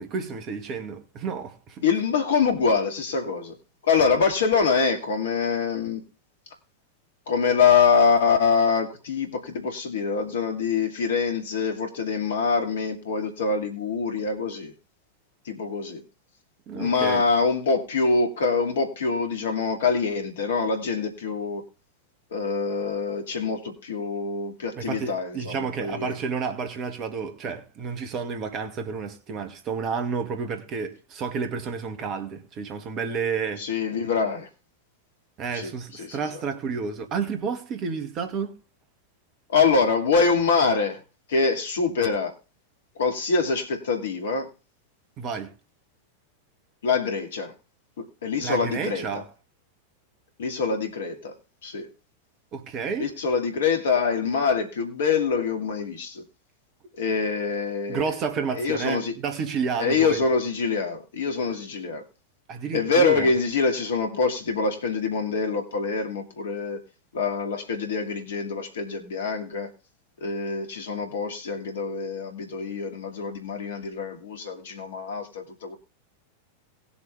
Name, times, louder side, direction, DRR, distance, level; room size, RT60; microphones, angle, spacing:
voice 1, 0.0-1.8 16.7-17.2 24.8-33.6 35.4-38.5 45.2-45.5 48.4-49.2 52.5-53.1 57.9-60.2 61.5-61.6 62.5-63.3, right 5 dB, 35° right, 2.1 m, -30 dB
voice 2, 1.8-3.5 3.9-6.0 7.3-14.7 15.5-16.0 16.7-21.6 22.3-26.2 33.6-34.5 35.5-36.4 39.5-41.0 41.3-42.3 43.0-44.5 46.8-47.5 48.0-49.2 50.4-51.3 51.6-51.9 53.0-56.2 57.0-58.1 58.5-59.1 59.8-62.0 62.7-66.8 67.1-69.7 70.2-75.7, left 5 dB, 65° left, 2.6 m, -25 dB
19.0 x 7.2 x 3.5 m
figure-of-eight pair, 90°, 0 cm